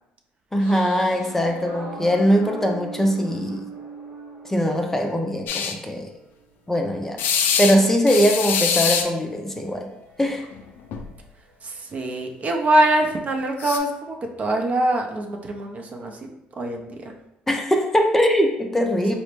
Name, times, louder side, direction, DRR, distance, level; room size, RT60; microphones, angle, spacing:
voice 1, 0.5-3.7 4.4-6.1 6.7-7.2 7.6-9.9 10.2-10.4 17.5-19.1, equal, 10° left, 2 dB, 0.4 m, -21 dB
sound 1, 0.6-6.6 7.0-11.2 11.5-14.1, right 3 dB, 85° right, 1.0 m, -43 dB
sound 2, 5.5-5.7 7.2-7.8 8.1-9.1 10.4-10.6 10.9-11.1 13.6-13.8, left 7 dB, 70° left, 0.4 m, -23 dB
voice 2, 11.6-16.2 16.6-17.1, right 1 dB, 45° right, 2 dB, 0.5 m, -23 dB
4.0 x 2.1 x 3.1 m, 0.86 s
supercardioid pair, 85°, 4 cm